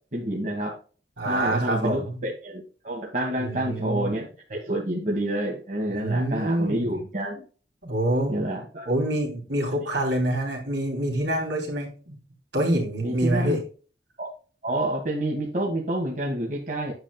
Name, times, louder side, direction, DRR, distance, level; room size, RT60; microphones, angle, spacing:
voice 1, 0.1-0.7 1.2-7.4 8.3-8.9 13.0-13.6 14.2-14.3 14.6-16.9, right 1 dB, 45° right, -1 dB, 1.8 m, -28 dB
voice 2, 1.2-2.2 3.4-4.1 5.9-7.0 7.8-8.4 8.8-12.2 12.5-13.6, right 1 dB, 75° right, 1 dB, 3.2 m, -26 dB
8.7 x 7.4 x 2.3 m, 0.37 s
head